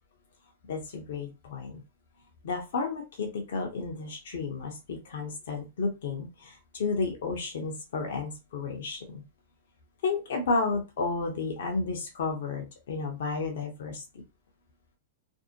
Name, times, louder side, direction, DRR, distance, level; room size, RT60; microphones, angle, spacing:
voice 1, 0.7-1.8 2.4-9.2 10.0-14.0, left 4 dB, 65° left, 1 dB, 0.7 m, -32 dB
2.6 x 2.0 x 2.7 m, 0.27 s
hypercardioid pair, 110°, 0 cm